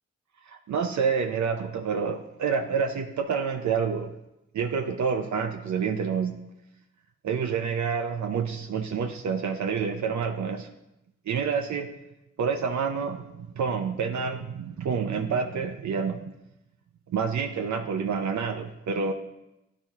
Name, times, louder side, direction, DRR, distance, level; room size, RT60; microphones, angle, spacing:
voice 1, 0.5-4.1 4.5-6.5 7.2-10.7 11.3-11.9 12.4-16.2 17.1-19.1, right 6 dB, 75° right, 5 dB, 0.6 m, -28 dB
10.5 x 4.2 x 3.6 m, 0.90 s
cardioid pair, 45°, 29 cm